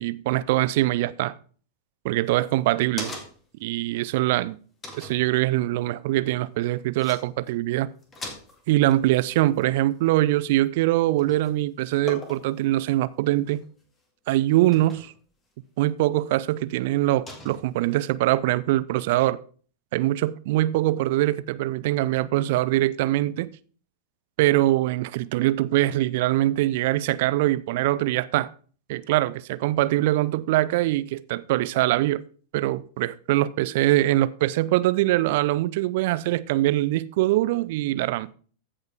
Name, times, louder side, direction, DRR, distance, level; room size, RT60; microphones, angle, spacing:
voice 1, 0.0-1.3 2.0-3.1 3.6-4.6 4.9-7.9 8.7-13.6 14.3-15.1 15.8-19.4 19.9-23.5 24.4-28.5 28.9-32.2 32.5-38.3, right 16 dB, 50° right, 0.4 m, -23 dB
sound 1, 2.3-3.6 4.0-4.1 4.8-5.2 6.6-6.7 7.0-7.2 7.5-7.7 8.0-10.8 11.2-11.6 12.1-12.6 13.4-13.9 14.7-15.2 15.8-15.9 17.3-18.0, left 1 dB, 20° left, 2.1 m, -40 dB
15.0 x 5.3 x 3.5 m
figure-of-eight pair, 90°, 0 cm